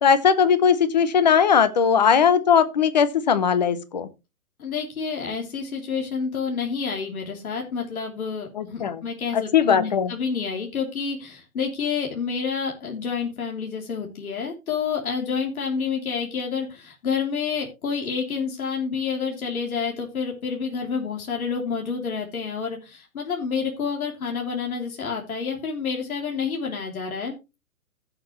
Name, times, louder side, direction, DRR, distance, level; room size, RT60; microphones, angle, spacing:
voice 1, 0.0-4.1 8.5-9.0 9.3-10.1, left 7 dB, 30° left, 0.7 m, -19 dB
voice 2, 4.6-27.6, left 6 dB, 70° left, 3.2 m, -29 dB
16.0 x 6.7 x 3.1 m
hypercardioid pair, 170°, 44 cm